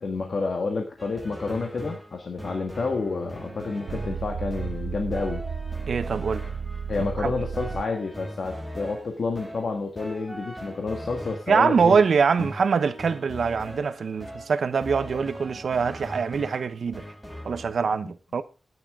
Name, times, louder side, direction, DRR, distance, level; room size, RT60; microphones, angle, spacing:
voice 1, 0.0-5.4 6.9-12.0 12.4-12.5, left 4 dB, 55° left, 1.6 m, -29 dB
sound 1, 1.0-17.7, equal, 5° left, 1.9 m, -40 dB
sound 2, 2.3-7.8, right 6 dB, 90° right, 0.5 m, -34 dB
voice 2, 5.9-6.4 7.2-7.3 11.5-17.0 17.4-18.4, right 5 dB, 70° right, 0.9 m, -23 dB
13.5 x 10.0 x 3.6 m
wide cardioid pair, 145°, 0 cm